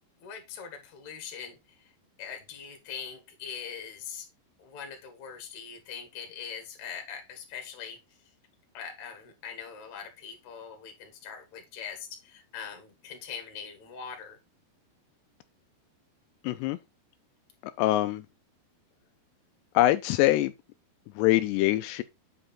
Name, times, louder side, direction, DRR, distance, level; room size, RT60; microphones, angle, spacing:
voice 1, 0.2-1.9 2.2-4.3 4.6-8.0 8.7-14.4, left 7 dB, 50° left, 2.6 m, -42 dB
voice 2, 16.4-16.8 17.6-18.3 19.7-20.5 21.2-22.0, left 16 dB, 85° left, 2.6 m, -24 dB
8.1 x 5.0 x 4.2 m
omnidirectional pair, 4.9 m